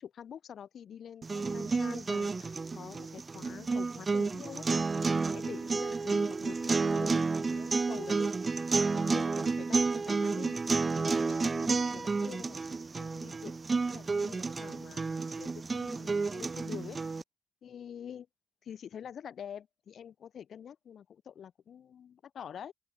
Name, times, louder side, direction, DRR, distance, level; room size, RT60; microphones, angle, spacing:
voice 1, 0.0-4.7 5.3-13.6 13.9-17.0 17.6-18.3 18.6-22.7, left 8 dB, 60° left, 6.6 m, -47 dB
sound 1, 1.2-17.2, right 4 dB, 25° right, 0.7 m, -31 dB
open air
cardioid pair, 120°, 0 cm